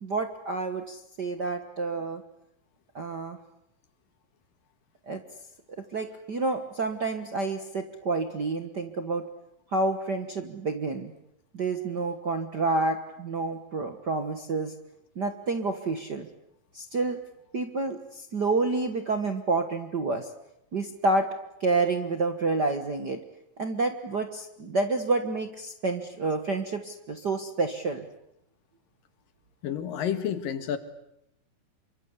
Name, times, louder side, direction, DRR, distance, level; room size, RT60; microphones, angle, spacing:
voice 1, 0.0-2.2 2.9-3.4 5.1-5.2 5.9-9.2 9.7-11.1 11.5-14.7 15.1-16.3 16.7-17.2 17.5-20.3 20.7-21.3 21.6-23.2 23.6-28.1, right 3 dB, 50° right, 7 dB, 1.3 m, -29 dB
voice 2, 29.6-30.8, left 9 dB, 80° left, 10 dB, 3.4 m, -30 dB
27.5 x 24.0 x 8.2 m, 0.81 s
omnidirectional pair, 3.9 m